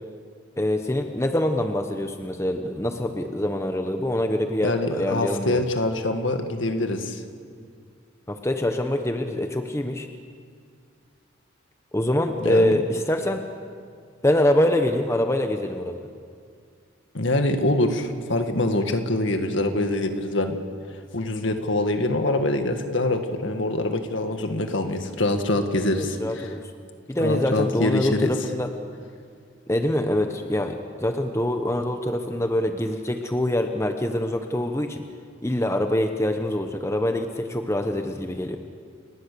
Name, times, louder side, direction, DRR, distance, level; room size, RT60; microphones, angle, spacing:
voice 1, 0.6-5.6 8.3-10.1 11.9-13.4 14.2-16.1 25.8-26.6 27.1-28.7 29.7-35.0 35.4-38.6, left 1 dB, 15° left, 6 dB, 1.0 m, -25 dB
voice 2, 4.6-7.2 12.4-12.7 17.1-20.6 21.1-26.5 27.2-28.3, left 1 dB, 65° left, 6 dB, 2.0 m, -24 dB
30.0 x 19.0 x 7.0 m, 2.2 s
head